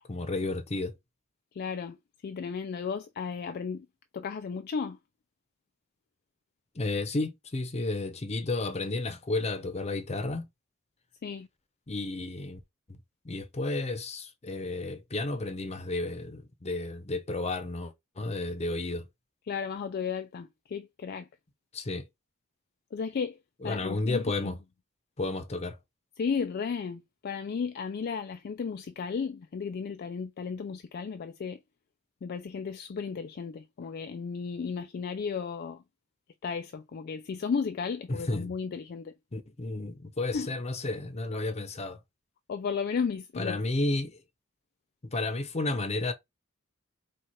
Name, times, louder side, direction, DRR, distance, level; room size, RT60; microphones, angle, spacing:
voice 1, 0.1-0.9 6.7-10.5 11.9-12.6 12.9-13.0 13.2-19.0 21.7-22.1 23.6-24.6 25.2-25.8 38.1-38.5 39.3-42.0 43.4-44.2 45.0-46.1, left 2 dB, 30° left, 0.7 m, -32 dB
voice 2, 1.5-2.0 2.2-3.9 4.1-5.0 11.2-11.5 19.5-21.3 22.9-24.6 26.2-31.6 32.2-35.8 36.4-39.1 40.3-40.5 42.5-43.6, left 5 dB, 50° left, 0.3 m, -34 dB
4.5 x 2.4 x 4.2 m
head